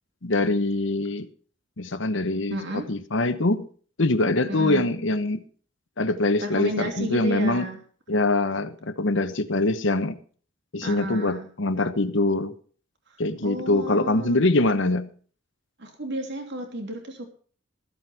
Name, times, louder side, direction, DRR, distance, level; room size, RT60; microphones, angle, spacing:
voice 1, 0.2-1.3 1.8-3.7 4.0-5.4 6.0-7.7 8.1-10.2 10.7-12.5 13.2-15.1, left 2 dB, 65° left, 11 dB, 1.1 m, -24 dB
voice 2, 2.5-2.9 4.5-4.9 6.4-7.8 10.8-11.5 13.4-14.4 15.8-17.3, right 1 dB, 60° right, 3 dB, 2.9 m, -32 dB
14.5 x 7.9 x 6.0 m, 0.44 s
head